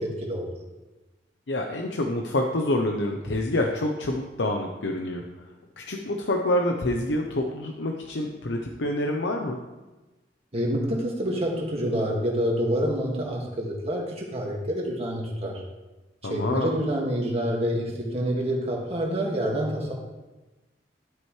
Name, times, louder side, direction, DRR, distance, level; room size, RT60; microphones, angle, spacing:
voice 1, 0.0-0.5 10.5-15.6 16.2-19.9, equal, 35° right, -2 dB, 2.0 m, -27 dB
voice 2, 1.5-5.3 5.8-9.6 16.2-16.7, left 1 dB, 70° left, 2 dB, 0.8 m, -27 dB
12.5 x 7.7 x 3.2 m, 1.1 s
head